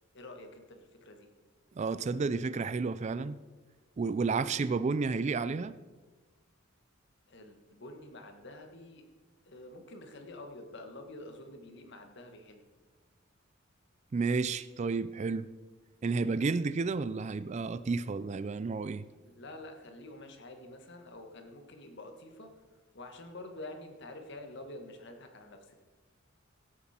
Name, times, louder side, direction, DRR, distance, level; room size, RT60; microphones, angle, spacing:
voice 1, 0.1-1.3 7.3-9.0 9.4-12.6 19.2-22.5 22.9-25.7, left 2 dB, 60° left, 1.6 m, -48 dB
voice 2, 1.8-3.4 4.0-5.7 14.1-15.5 16.0-19.0, right 4 dB, 35° right, 0.3 m, -31 dB
17.0 x 8.4 x 4.4 m
head